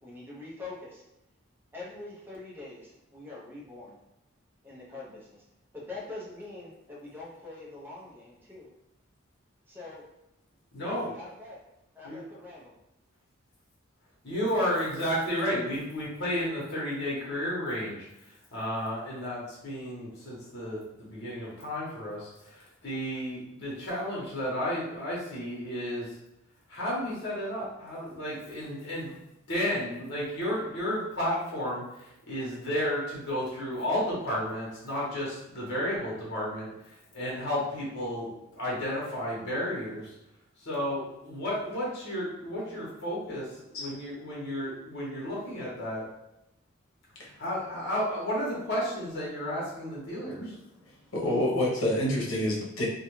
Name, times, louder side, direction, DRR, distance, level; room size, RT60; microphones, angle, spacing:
voice 1, 0.0-1.0 1.7-4.0 4.6-5.5 5.7-8.7 9.7-10.1 10.8-11.6 11.9-12.8, left 2 dB, 10° right, -6 dB, 0.6 m, -44 dB
voice 2, 10.7-11.1 12.0-12.2 14.2-18.1 18.5-26.1 26.7-29.2 29.5-40.1 40.6-46.1 47.4-50.4, equal, 55° left, -5 dB, 0.9 m, -32 dB
voice 3, 51.1-52.9, left 1 dB, 85° left, -3 dB, 0.8 m, -28 dB
2.4 x 2.2 x 3.0 m, 0.88 s
head